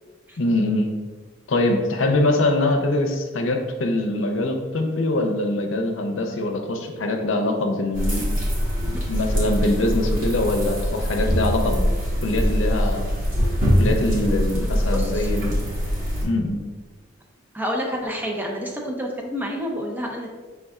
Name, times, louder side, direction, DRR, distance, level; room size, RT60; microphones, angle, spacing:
voice 1, 0.4-0.9 1.5-8.2 8.8-11.8 12.2-13.1 13.8-15.6 16.2-16.6, left 2 dB, 85° left, 3 dB, 0.6 m, -23 dB
sound 1, 7.9-16.2, equal, 45° right, 1.3 m, -23 dB
voice 2, 14.8-15.3 17.5-20.3, equal, 10° right, 0 dB, 0.5 m, -29 dB
5.3 x 3.5 x 2.4 m, 1.4 s
head